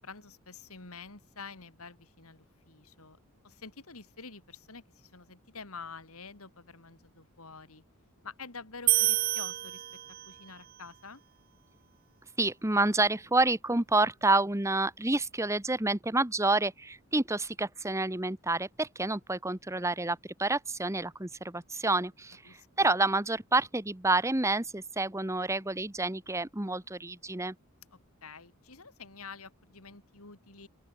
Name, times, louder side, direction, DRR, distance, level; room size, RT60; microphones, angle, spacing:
voice 1, 0.0-3.2 3.4-7.8 8.2-10.0 10.2-11.2 22.4-22.9 27.9-30.7, left 4 dB, 70° left, 3.2 m, -48 dB
sound 1, 8.9-10.5, right 17 dB, 40° right, 0.4 m, -28 dB
voice 2, 12.4-27.5, right 2 dB, 15° right, 1.2 m, -29 dB
open air
head